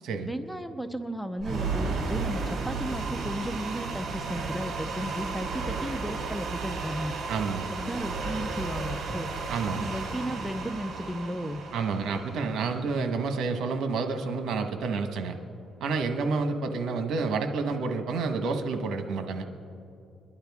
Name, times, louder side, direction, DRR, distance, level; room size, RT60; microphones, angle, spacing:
voice 1, 0.2-7.2 7.7-9.3 9.8-11.6, equal, ahead, 9 dB, 0.7 m, -34 dB
sound 1, 1.4-13.5, right 4 dB, 55° right, 2.3 m, -34 dB
voice 2, 7.3-7.7 9.5-9.9 11.7-15.3 15.8-19.4, right 4 dB, 75° right, 7 dB, 1.2 m, -29 dB
23.5 x 11.5 x 3.6 m, 2.5 s
cardioid pair, 90°, 0 cm